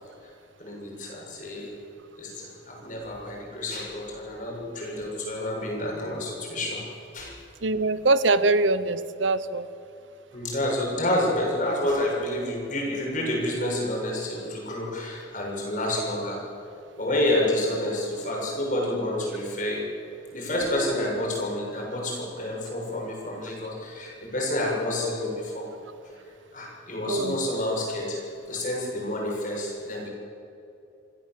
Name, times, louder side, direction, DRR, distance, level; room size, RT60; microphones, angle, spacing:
voice 1, 0.6-1.7 2.2-6.8 7.1-7.4 10.3-16.4 17.0-19.9 20.3-25.7 26.5-28.2 28.5-30.1, left 1 dB, 40° left, -1 dB, 6.8 m, -29 dB
voice 2, 7.6-9.7 27.1-27.4, right 3 dB, 75° right, 14 dB, 0.9 m, -23 dB
27.5 x 16.0 x 7.7 m, 2.7 s
head